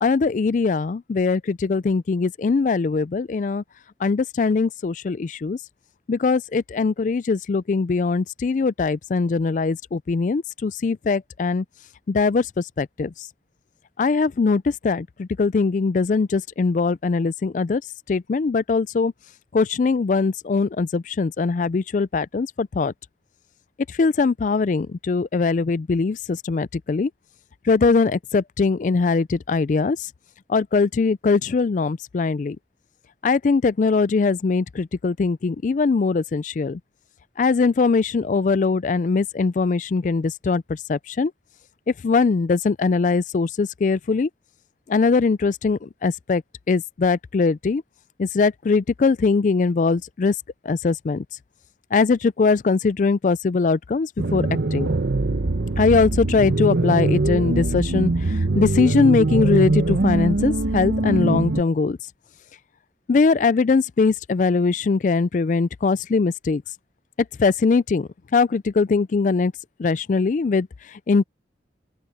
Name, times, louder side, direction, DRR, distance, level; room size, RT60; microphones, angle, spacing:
voice 1, 0.0-3.6 4.0-5.6 6.1-11.6 12.1-13.1 14.0-17.8 18.1-19.1 19.5-22.9 24.0-27.1 27.7-30.0 30.5-32.6 33.2-36.8 37.4-41.3 42.0-44.3 44.9-46.4 46.7-47.8 48.2-50.3 50.7-51.2 51.9-54.4 54.7-54.9 55.8-62.0 63.1-66.6 67.4-69.5 69.8-70.7 71.1-71.2, left 4 dB, 45° left, 0.3 m, -21 dB
sound 1, 54.2-61.6, right 2 dB, 75° right, 0.9 m, -22 dB
open air
head